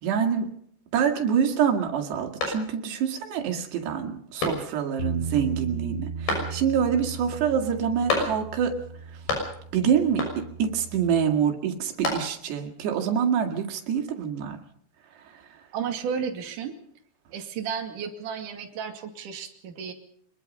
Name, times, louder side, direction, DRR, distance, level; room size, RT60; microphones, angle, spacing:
voice 1, 0.0-0.5 0.9-8.7 9.7-14.6, right 7 dB, 85° right, 2 dB, 4.4 m, -26 dB
sound 1, 2.4-3.1 3.5-3.6 4.4-5.0 6.3-6.9 8.1-8.7 8.9-9.8 10.2-10.7 11.7-12.6, left 2 dB, 70° left, 8.2 m, -30 dB
Bass guitar, 5.0-11.2, right 5 dB, 40° left, 7.0 m, -36 dB
voice 2, 15.7-16.7 17.3-19.9, right 7 dB, 55° right, 4 dB, 3.6 m, -33 dB
24.0 x 21.5 x 5.4 m, 0.68 s
omnidirectional pair, 4.7 m